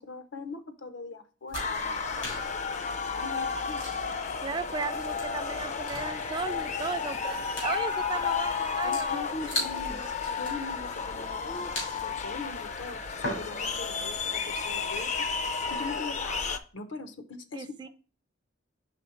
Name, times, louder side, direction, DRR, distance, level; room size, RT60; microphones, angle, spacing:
voice 1, 0.0-2.5 3.1-4.2 8.8-15.3 15.7-17.9, left 3 dB, 75° left, 9 dB, 0.7 m, -41 dB
sound 1, 1.5-13.9, left 1 dB, 90° left, 2.7 m, -41 dB
sound 2, 1.5-16.6, left 5 dB, 40° left, 0.5 m, -32 dB
voice 2, 4.4-9.2 9.9-10.0 17.5-17.9, right 4 dB, 25° right, 11 dB, 0.4 m, -35 dB
5.1 x 3.5 x 5.6 m, 0.37 s
head